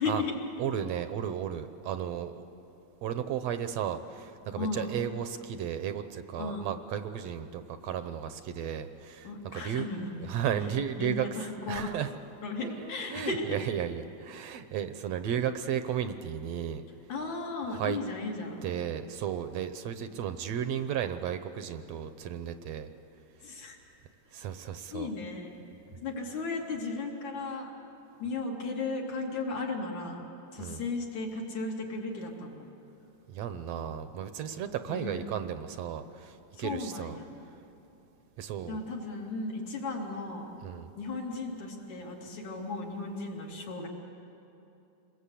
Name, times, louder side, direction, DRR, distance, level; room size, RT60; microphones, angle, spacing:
voice 1, 0.0-0.5 4.6-4.9 6.4-6.7 9.2-10.3 11.0-12.0 12.4-13.5 17.1-18.7 23.4-23.8 24.9-25.5 25.9-27.7 28.2-30.2 30.5-32.6 34.9-35.3 36.5-37.3 38.7-40.5 41.0-43.9, left 3 dB, 75° left, -2 dB, 4.1 m, -35 dB
voice 2, 0.6-2.4 3.0-9.9 10.2-11.3 11.7-12.1 12.6-16.8 17.7-18.0 18.6-22.9 24.3-25.1 30.6-30.8 33.3-37.2 38.4-38.8 40.6-40.9, right 9 dB, 70° right, 10 dB, 1.8 m, -34 dB
27.5 x 21.0 x 8.4 m, 2.9 s
omnidirectional pair, 3.4 m